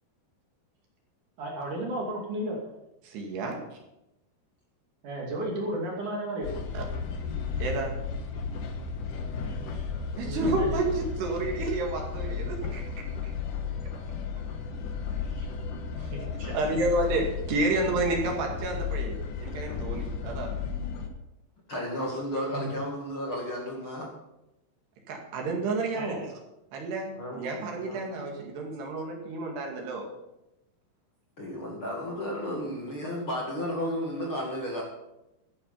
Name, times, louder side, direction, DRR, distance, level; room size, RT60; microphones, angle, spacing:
voice 1, 1.4-2.6 5.0-6.5 10.2-10.8 15.3-15.5 16.1-16.8 22.5-22.7 25.9-26.2, right 1 dB, 45° right, -2 dB, 3.5 m, -34 dB
voice 2, 3.1-3.6 6.7-6.8 7.6-8.0 10.2-13.3 16.0-16.1 16.5-20.5 25.1-26.3 26.7-30.1, right 2 dB, 60° right, 1 dB, 3.8 m, -30 dB
sound 1, 6.4-21.1, left 5 dB, 80° left, 1.8 m, -34 dB
voice 3, 21.7-24.1 27.1-27.4 27.7-28.0 31.4-34.8, equal, 50° left, -2 dB, 1.5 m, -33 dB
14.0 x 10.5 x 5.6 m, 0.90 s
omnidirectional pair, 5.8 m